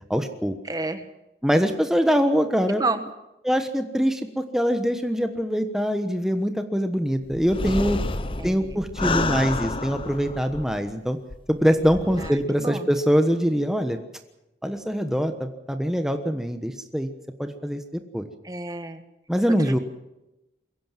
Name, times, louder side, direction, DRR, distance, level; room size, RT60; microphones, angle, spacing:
voice 1, 0.1-0.6 1.4-2.8 3.4-8.0 8.4-11.2 11.5-14.0 14.6-17.1 17.4-18.3 19.3-19.8, equal, 5° right, 6 dB, 1.2 m, -23 dB
voice 2, 0.6-1.0 2.7-3.0 8.4-8.7 12.2-12.9 18.4-19.0 19.6-19.8, right 2 dB, 20° right, 10 dB, 1.3 m, -30 dB
sound 1, 7.3-10.9 11.3-11.4 11.8-12.3, left 2 dB, 30° left, 0.8 m, -29 dB
22.5 x 16.5 x 7.6 m, 0.92 s
head